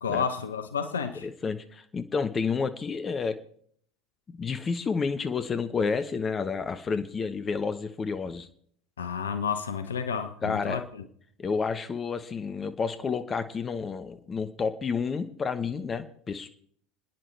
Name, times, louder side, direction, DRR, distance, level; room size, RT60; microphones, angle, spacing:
voice 1, 0.0-1.3 9.0-11.1, left 6 dB, 80° left, 1.0 m, -31 dB
voice 2, 1.2-3.4 4.4-8.5 10.4-10.8 11.4-16.5, left 5 dB, 25° left, 1.1 m, -30 dB
28.0 x 10.0 x 3.4 m
figure-of-eight pair, 75°, 0 cm